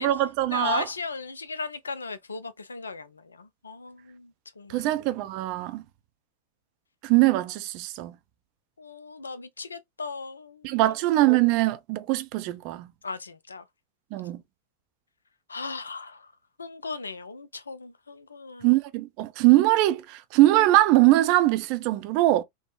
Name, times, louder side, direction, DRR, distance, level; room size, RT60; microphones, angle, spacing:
voice 1, 0.0-0.9 4.7-5.8 7.0-8.1 10.6-12.9 14.1-14.4 18.6-22.4, right 16 dB, 45° right, 0.4 m, -22 dB
voice 2, 0.5-3.1 3.4-4.3 4.6-4.9 8.8-10.9 13.0-13.6 15.5-16.2 16.6-18.7, left 4 dB, 75° left, 0.4 m, -36 dB
3.3 x 2.0 x 2.3 m
figure-of-eight pair, 90°, 0 cm